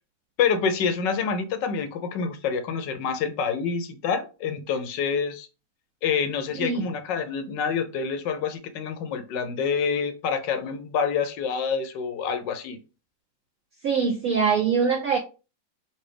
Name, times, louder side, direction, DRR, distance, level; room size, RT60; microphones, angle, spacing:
voice 1, 0.4-5.5 6.0-12.8, left 6 dB, 75° left, 1.3 m, -27 dB
voice 2, 13.8-15.2, right 6 dB, 65° right, 0.9 m, -23 dB
5.7 x 2.7 x 3.3 m
omnidirectional pair, 2.0 m